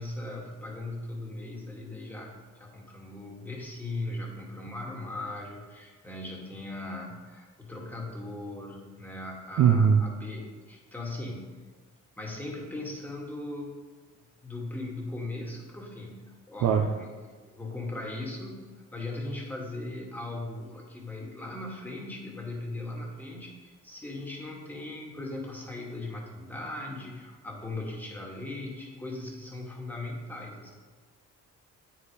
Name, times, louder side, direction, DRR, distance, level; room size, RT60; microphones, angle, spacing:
voice 1, 0.0-11.6 12.2-13.8 14.4-18.6 18.9-30.7, left 2 dB, 5° left, -2 dB, 2.0 m, -38 dB
voice 2, 9.6-10.0 16.6-16.9, right 7 dB, 70° right, 3 dB, 0.7 m, -20 dB
8.5 x 5.2 x 5.0 m, 1.4 s
cardioid pair, 90°, 30 cm